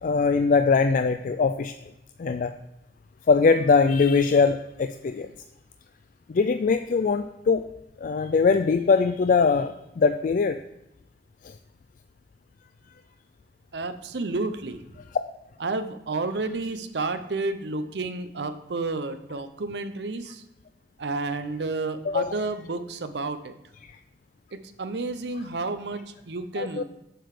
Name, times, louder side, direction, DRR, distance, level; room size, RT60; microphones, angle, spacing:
voice 1, 0.0-1.7 2.2-2.5 3.3-5.3 6.3-7.6 8.0-10.6 11.4-11.5 22.1-22.3 26.6-26.8, left 4 dB, 50° left, 9 dB, 0.3 m, -21 dB
voice 2, 13.7-14.8 15.6-20.4 21.0-23.5 24.5-26.8, right 3 dB, 70° right, 10 dB, 0.7 m, -31 dB
7.7 x 6.8 x 4.9 m, 0.91 s
head